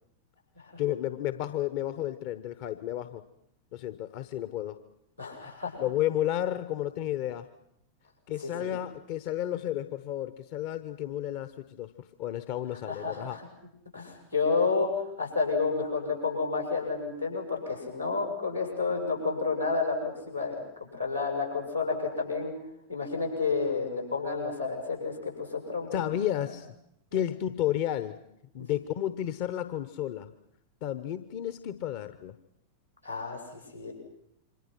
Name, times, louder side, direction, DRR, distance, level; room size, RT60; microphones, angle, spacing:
voice 1, 0.8-3.2 3.7-4.8 5.8-7.5 8.3-13.4 25.9-26.7 27.1-28.2 28.5-30.3 30.8-32.3, left 12 dB, 45° left, 12 dB, 1.0 m, -32 dB
voice 2, 5.2-5.8 8.4-8.8 12.8-13.5 13.9-22.5 22.9-26.0 26.5-26.6 33.0-33.9, left 4 dB, 90° left, 1 dB, 7.5 m, -30 dB
27.5 x 25.5 x 6.0 m, 0.76 s
figure-of-eight pair, 90°, 0 cm